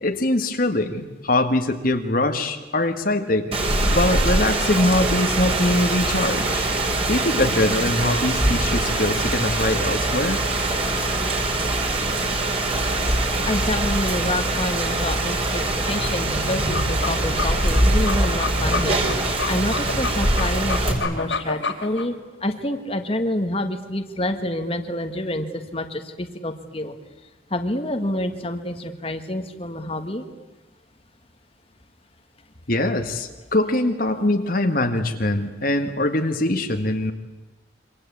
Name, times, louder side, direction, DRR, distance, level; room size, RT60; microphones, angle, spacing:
voice 1, 0.0-3.6 3.9-6.7 7.1-10.4 32.7-37.1, left 1 dB, 50° left, 5 dB, 1.8 m, -22 dB
Rain, 3.5-20.9, right 2 dB, 30° right, 4.6 m, -23 dB
voice 2, 13.5-22.1 22.4-27.0 27.5-30.2, left 1 dB, 30° left, 6 dB, 1.8 m, -28 dB
sound 1, 16.7-22.1, left 4 dB, 80° left, 3.9 m, -29 dB
27.0 x 25.0 x 8.6 m, 1.1 s
head